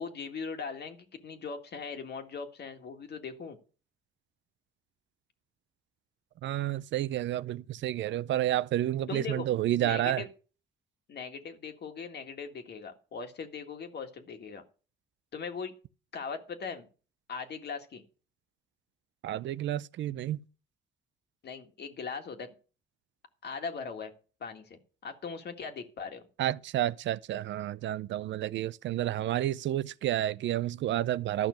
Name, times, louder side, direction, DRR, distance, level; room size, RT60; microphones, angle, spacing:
voice 1, 0.0-3.6 9.1-9.5 9.8-10.3 11.1-14.6 15.3-15.7 16.1-16.9 17.3-18.0 21.4-22.6 23.4-24.1 24.4-26.2, left 5 dB, 55° left, 1.9 m, -39 dB
voice 2, 6.4-10.2 19.2-20.4 26.4-31.5, right 13 dB, 65° right, 0.5 m, -30 dB
12.0 x 5.9 x 6.4 m
cardioid pair, 90°, 20 cm